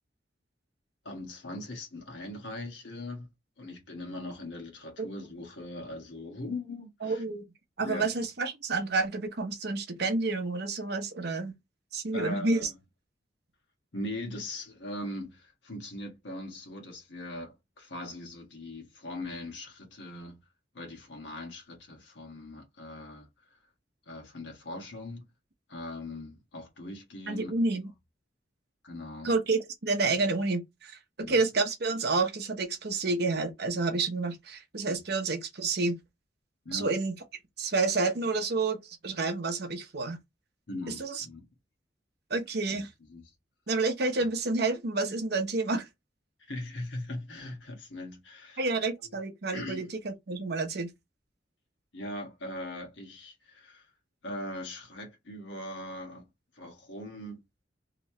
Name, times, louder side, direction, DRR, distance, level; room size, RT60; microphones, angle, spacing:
voice 1, 1.0-3.3 3.6-7.2 7.8-8.1 12.1-12.7 13.9-20.4 20.7-23.6 24.1-25.3 25.7-27.5 28.8-29.3 31.2-31.4 34.8-35.0 36.6-36.9 40.7-41.5 42.7-42.8 43.1-43.3 44.1-44.3 46.5-48.7 49.0-49.1 49.5-49.9 51.9-53.9 54.2-56.2 56.5-57.4, left 1 dB, 75° left, 1.4 m, -40 dB
voice 2, 7.0-7.5 7.8-11.6 11.9-12.7 27.3-27.9 29.2-36.0 36.7-37.1 37.6-40.2 40.9-41.2 42.3-42.9 43.7-45.8 48.6-50.9, right 3 dB, 60° right, 0.8 m, -29 dB
3.1 x 2.9 x 2.8 m
head